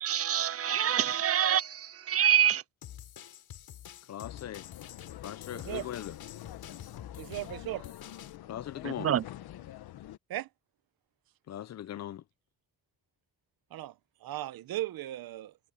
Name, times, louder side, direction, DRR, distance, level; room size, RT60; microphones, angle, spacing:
voice 1, 0.0-1.6 2.1-2.6 9.0-9.2, right 10 dB, 40° right, 0.4 m, -25 dB
sound 1, 2.8-8.4, left 10 dB, 70° left, 5.0 m, -48 dB
voice 2, 4.1-4.6 5.2-6.1 8.5-9.1 11.5-12.2, left 11 dB, 45° left, 0.5 m, -39 dB
sound 2, 4.2-10.2, left 13 dB, 85° left, 1.2 m, -47 dB
voice 3, 5.5-5.9 7.2-7.8 10.3-10.5 13.7-13.9 14.2-15.5, right 15 dB, 70° right, 0.8 m, -37 dB
wide cardioid pair, 165°, 36 cm